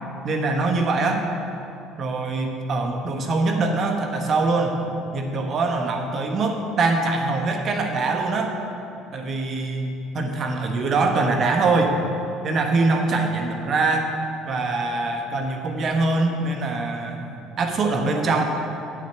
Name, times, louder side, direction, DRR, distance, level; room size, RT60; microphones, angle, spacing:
voice 1, 0.2-1.2 2.0-4.8 5.1-8.6 9.1-9.9 10.1-12.0 12.4-14.1 14.5-18.4, right 3 dB, 45° right, 3 dB, 1.3 m, -23 dB
8.3 x 7.5 x 5.9 m, 2.6 s
hypercardioid pair, 70°, 0 cm